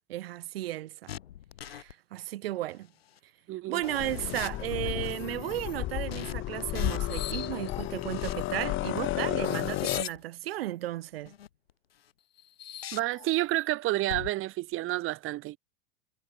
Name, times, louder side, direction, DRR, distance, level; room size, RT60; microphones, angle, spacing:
voice 1, 0.1-1.1 1.6-2.9 3.7-11.3, right 15 dB, 80° right, 4.0 m, -34 dB
sound 1, 1.1-1.9 3.2-3.3 3.7-5.8 6.1-6.3 6.6-8.4 8.8-10.2 11.3-11.7 12.4-13.7 14.1-14.3, left 11 dB, 90° left, 3.5 m, -40 dB
voice 2, 3.5-3.8 12.9-15.6, right 17 dB, 45° right, 1.6 m, -29 dB
sound 2, 4.0-10.0, left 16 dB, 40° left, 1.3 m, -33 dB
hypercardioid pair, 100°, 29 cm